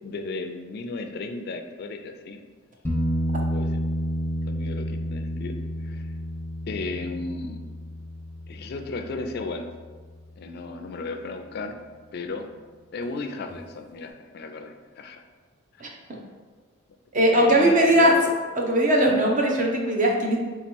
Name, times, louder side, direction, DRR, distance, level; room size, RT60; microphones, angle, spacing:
voice 1, 0.0-2.4 3.4-3.8 4.5-5.5 5.8-6.1 6.7-7.6 8.5-9.7 10.4-11.8 12.1-12.5 12.9-15.2 15.7-15.9 17.3-18.2, left 3 dB, 50° left, 6 dB, 0.3 m, -34 dB
sound 1, 2.8-10.5 13.5-13.6, equal, 10° left, 0.6 m, -31 dB
voice 2, 15.8-16.2 17.1-18.1 18.6-20.4, right 1 dB, 40° right, 0 dB, 0.7 m, -20 dB
3.7 x 3.0 x 4.3 m, 1.4 s
head